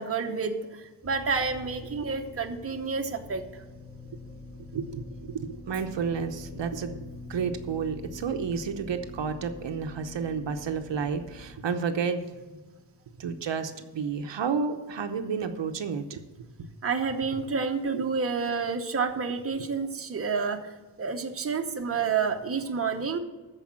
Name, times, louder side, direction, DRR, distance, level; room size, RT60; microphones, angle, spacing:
voice 1, 0.0-3.4 16.8-23.2, right 5 dB, 30° right, 4 dB, 0.9 m, -29 dB
sound 1, 1.0-11.6, left 1 dB, 10° left, 2.3 m, -45 dB
voice 2, 4.7-12.3 13.2-16.2 16.6-16.7 17.9-18.1, right 6 dB, 65° right, 6 dB, 0.9 m, -31 dB
13.5 x 4.9 x 7.4 m, 1.2 s
wide cardioid pair, 155°, 46 cm